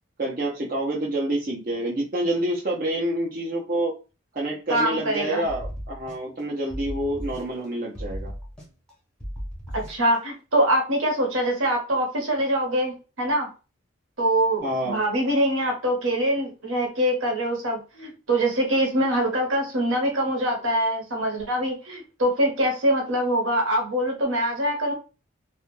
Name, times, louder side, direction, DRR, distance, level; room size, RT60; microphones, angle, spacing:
voice 1, 0.2-3.9 4.3-8.3 14.6-15.0, right 1 dB, 45° right, -3 dB, 0.5 m, -27 dB
voice 2, 4.7-5.5 9.7-13.5 14.2-24.9, right 1 dB, 70° right, 1 dB, 1.0 m, -24 dB
sound 1, 5.5-6.4 6.7-7.7 8.0-8.9 9.2-10.2, equal, 5° left, 0.6 m, -36 dB
2.3 x 2.1 x 3.0 m, 0.31 s
head